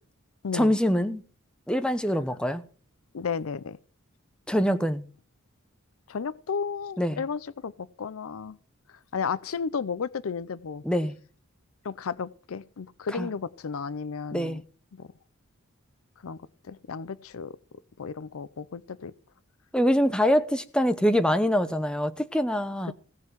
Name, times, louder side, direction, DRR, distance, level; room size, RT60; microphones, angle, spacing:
voice 1, 0.5-1.2 1.7-2.6 4.5-5.0 7.0-7.2 10.8-11.1 13.1-13.3 14.3-14.6 19.7-22.9, equal, 5° left, 0.9 m, -24 dB
voice 2, 3.1-3.8 6.1-8.6 8.9-10.8 11.8-14.6 14.9-15.1 16.2-16.4 16.7-17.6 18.0-19.1, left 5 dB, 75° left, 0.5 m, -33 dB
17.0 x 5.7 x 7.3 m
head